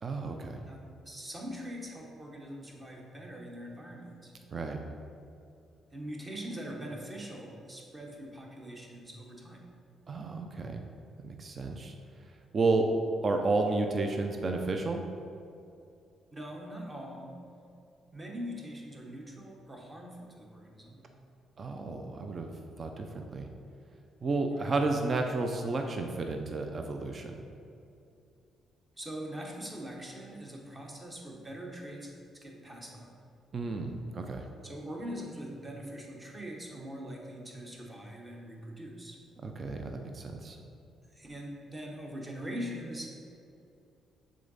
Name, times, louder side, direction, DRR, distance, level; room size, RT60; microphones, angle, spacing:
voice 1, 0.0-0.6 4.5-4.8 10.1-10.8 11.2-11.9 12.5-12.9 13.2-15.0 21.6-22.5 22.8-23.5 24.2-27.4 33.5-34.4 39.4-40.6, right 3 dB, 40° right, 4 dB, 0.5 m, -31 dB
voice 2, 0.7-4.3 5.9-9.7 16.3-17.4 18.1-21.1 24.5-24.7 28.9-33.2 34.6-39.2 41.1-43.1, equal, 25° right, -1 dB, 1.2 m, -42 dB
6.7 x 3.8 x 4.1 m, 2.5 s
cardioid pair, 90°, 0 cm